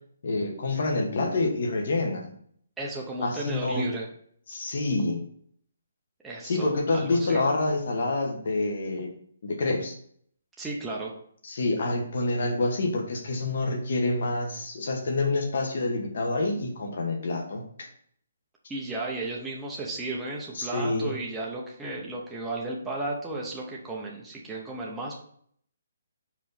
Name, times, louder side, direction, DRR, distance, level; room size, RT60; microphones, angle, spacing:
voice 1, 0.2-2.3 3.2-3.9 4.5-5.2 6.4-9.1 9.4-9.9 11.4-17.9 20.5-21.2, left 2 dB, 50° left, 2 dB, 1.3 m, -27 dB
voice 2, 2.8-4.1 6.2-7.4 10.6-11.1 18.7-25.1, right 2 dB, 5° right, -4 dB, 0.7 m, -34 dB
4.8 x 4.0 x 5.7 m, 0.63 s
hypercardioid pair, 175°, 0 cm